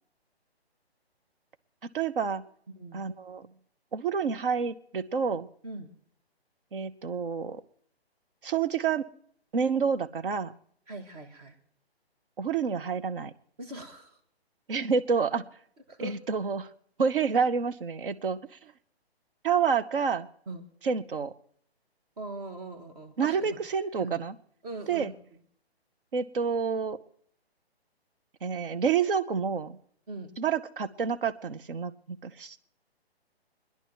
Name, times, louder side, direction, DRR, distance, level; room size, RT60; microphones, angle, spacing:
voice 1, 1.8-2.4 2.9-3.5 3.9-5.5 6.7-7.6 8.4-9.0 9.5-10.5 12.4-13.3 14.7-15.4 16.0-16.7 17.0-18.4 19.4-20.3 20.8-21.3 23.2-24.3 24.9-25.1 26.1-27.0 28.4-29.8 30.4-32.6, right 6 dB, 55° right, 11 dB, 0.9 m, -28 dB
voice 2, 2.8-3.1 5.6-5.9 10.9-11.6 13.6-14.2 15.9-16.2 20.5-20.7 22.2-23.5 24.0-24.2 24.6-25.1 30.1-30.3, right 2 dB, 35° right, 5 dB, 2.1 m, -41 dB
22.5 x 10.5 x 4.5 m, 0.63 s
figure-of-eight pair, 140°, 32 cm